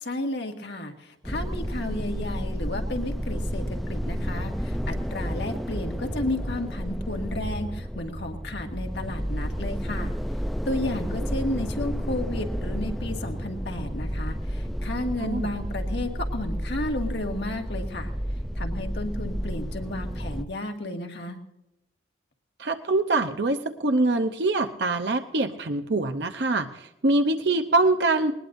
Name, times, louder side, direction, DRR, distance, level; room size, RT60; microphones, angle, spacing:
voice 1, 0.0-10.1 10.7-18.1 18.6-21.4, left 1 dB, 60° left, 3 dB, 1.8 m, -33 dB
sound 1, 1.2-20.4, equal, ahead, 0.5 m, -31 dB
voice 2, 22.6-28.3, right 2 dB, 55° right, 6 dB, 0.8 m, -24 dB
20.0 x 20.0 x 2.6 m, 0.94 s
head